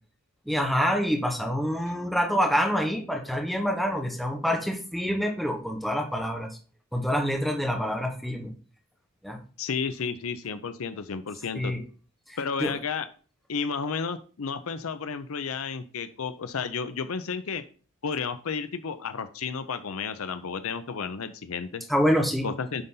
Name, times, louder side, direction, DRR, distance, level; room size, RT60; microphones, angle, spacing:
voice 1, 0.5-6.5 6.9-8.5 9.2-9.4 11.5-11.8 12.3-12.7 21.9-22.4, equal, ahead, 1 dB, 1.2 m, -26 dB
voice 2, 9.6-11.7 12.4-13.0 13.5-17.6 18.0-21.9 22.4-22.9, left 5 dB, 70° left, 11 dB, 0.6 m, -32 dB
9.6 x 4.0 x 3.8 m, 0.38 s
head